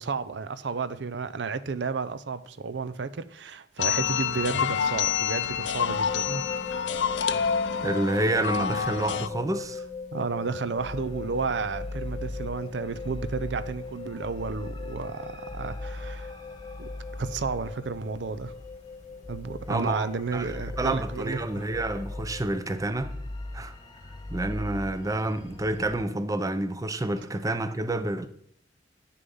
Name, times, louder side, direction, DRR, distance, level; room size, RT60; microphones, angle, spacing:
voice 1, 0.0-6.4 10.1-16.3 16.8-16.9 17.2-18.5 19.3-21.7, right 4 dB, 85° right, 0.6 m, -32 dB
sound 1, 3.8-9.3, left 7 dB, 90° left, 0.5 m, -28 dB
sound 2, 5.8-22.7, left 5 dB, 45° left, 0.8 m, -40 dB
voice 2, 7.8-9.8 19.7-20.1 20.3-23.1 23.5-23.7 24.3-28.3, right 2 dB, 20° right, 0.6 m, -29 dB
sound 3, 10.8-26.0, left 1 dB, 25° left, 1.2 m, -40 dB
9.4 x 6.8 x 5.4 m
head